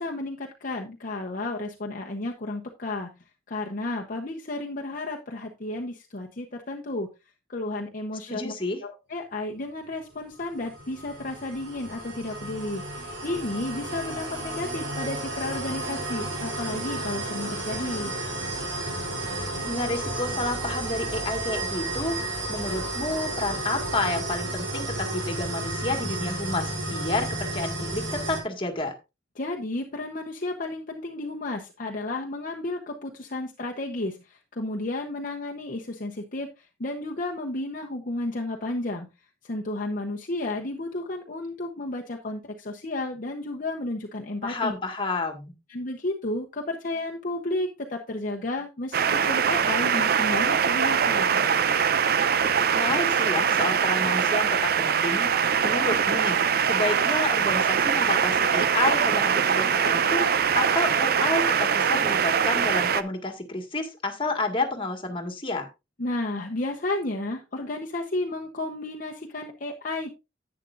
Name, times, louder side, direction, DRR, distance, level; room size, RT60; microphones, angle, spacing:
voice 1, 0.0-3.1 3.5-7.1 7.5-8.5 8.8-18.1 29.4-39.1 39.4-44.7 45.7-51.4 66.0-70.1, left 2 dB, 45° left, 1 dB, 1.0 m, -32 dB
voice 2, 8.3-8.8 19.6-22.2 22.5-28.9 44.4-45.5 52.7-55.3 55.6-56.4 56.7-60.3 60.5-65.7, left 2 dB, 30° left, 3 dB, 1.9 m, -30 dB
sound 1, 10.4-28.4, right 2 dB, 85° right, 3.5 m, -32 dB
sound 2, 48.9-63.0, right 7 dB, 55° right, 0.6 m, -23 dB
11.0 x 9.0 x 2.5 m, 0.26 s
head